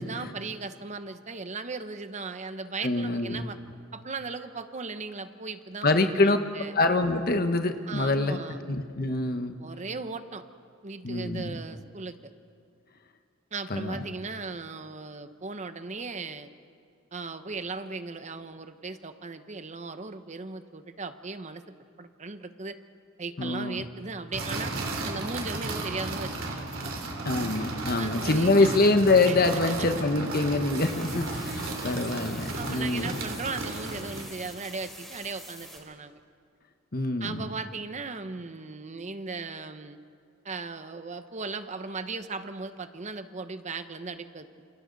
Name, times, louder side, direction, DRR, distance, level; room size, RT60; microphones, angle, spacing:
voice 1, 0.0-3.6 3.9-6.8 7.9-8.6 9.6-10.4 10.8-12.3 13.5-16.5 17.1-22.8 23.2-24.7 25.1-26.7 28.0-28.7 29.3-29.4 29.8-29.9 32.5-36.1 37.2-40.0 40.4-44.5, right 4 dB, 35° right, 9 dB, 0.9 m, -37 dB
voice 2, 2.8-3.4 5.8-6.4 6.7-8.4 8.7-9.6 11.0-11.6 13.7-14.0 23.4-23.8 27.2-33.1 36.9-37.5, left 2 dB, 50° left, 7 dB, 1.3 m, -25 dB
sound 1, 24.3-34.4, right 2 dB, 80° right, 3.4 m, -34 dB
sound 2, 30.8-35.8, equal, ahead, 3.9 m, -45 dB
28.5 x 28.0 x 4.1 m, 2.3 s
head